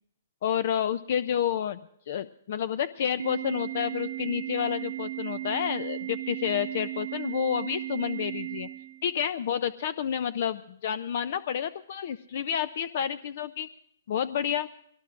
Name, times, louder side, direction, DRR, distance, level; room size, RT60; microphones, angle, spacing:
voice 1, 0.4-1.8 2.1-8.7 9.0-13.7 14.1-14.7, left 9 dB, 55° left, 15 dB, 0.4 m, -29 dB
Organ, 3.2-9.2, right 15 dB, 65° right, 0.8 m, -36 dB
22.0 x 18.0 x 2.5 m, 0.74 s
hypercardioid pair, 140°, 0 cm